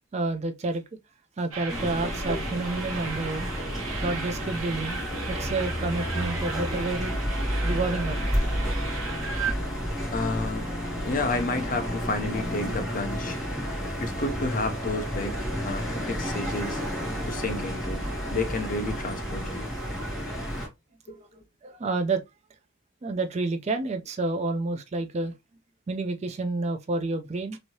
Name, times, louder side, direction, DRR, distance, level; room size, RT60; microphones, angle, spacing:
voice 1, 0.1-0.8 1.4-3.5 4.0-5.0 5.3-7.2 7.6-8.3 9.3-9.5 21.1-21.2 21.6-22.2 23.0-25.3 25.9-27.6, right 3 dB, 30° right, 0.3 m, -29 dB
sound 1, 1.5-9.5, right 4 dB, 90° right, 0.9 m, -36 dB
sound 2, 1.7-20.7, equal, ahead, 1.2 m, -31 dB
sound 3, 5.8-18.6, left 1 dB, 80° left, 0.7 m, -45 dB
voice 2, 10.1-10.7 11.0-13.4 14.0-16.8 17.2-19.7 21.1-21.3, left 2 dB, 40° left, 0.5 m, -31 dB
3.0 x 2.7 x 2.7 m
head